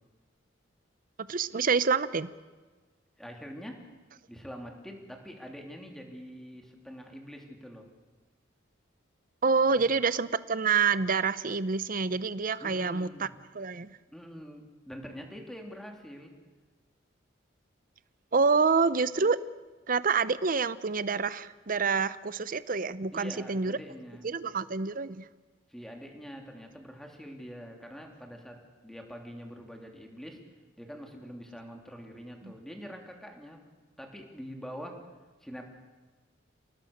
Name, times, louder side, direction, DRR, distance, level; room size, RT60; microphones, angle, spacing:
voice 1, 1.2-2.3 9.4-13.3 13.5-14.0 18.3-19.4 19.9-23.8 24.2-25.3 32.4-32.5, right 5 dB, 45° right, 16 dB, 0.7 m, -27 dB
voice 2, 3.2-3.8 4.3-7.9 9.7-9.8 12.6-13.3 14.1-16.3 23.1-24.3 25.7-30.4 30.8-33.6 34.0-35.0 35.4-35.6, equal, ahead, 2 dB, 3.0 m, -45 dB
28.5 x 18.5 x 6.6 m, 1.3 s
head